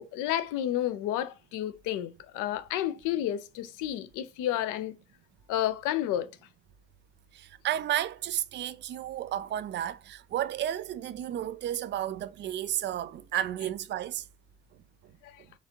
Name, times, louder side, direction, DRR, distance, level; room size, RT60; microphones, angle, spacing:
voice 1, 0.0-4.9 5.5-6.3 15.2-15.4, left 12 dB, 55° left, 0.6 m, -31 dB
voice 2, 7.3-14.2, right 12 dB, 30° right, 0.4 m, -32 dB
4.7 x 3.3 x 2.8 m
figure-of-eight pair, 45°, 38 cm